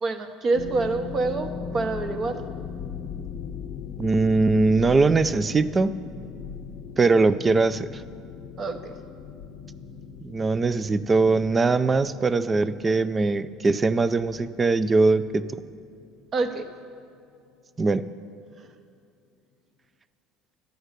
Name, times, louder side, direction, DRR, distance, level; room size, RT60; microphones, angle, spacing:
voice 1, 0.0-1.5 1.7-2.4 8.6-8.9 16.3-16.6 18.6-18.7, right 3 dB, 40° right, 7 dB, 0.9 m, -26 dB
sound 1, 0.5-16.5, left 6 dB, 60° left, 0.6 m, -39 dB
voice 2, 4.0-6.0 7.0-8.0 10.2-15.5 17.8-18.1, right 3 dB, 25° right, 15 dB, 0.4 m, -21 dB
11.5 x 8.1 x 6.6 m, 2.5 s
supercardioid pair, 100°, 0 cm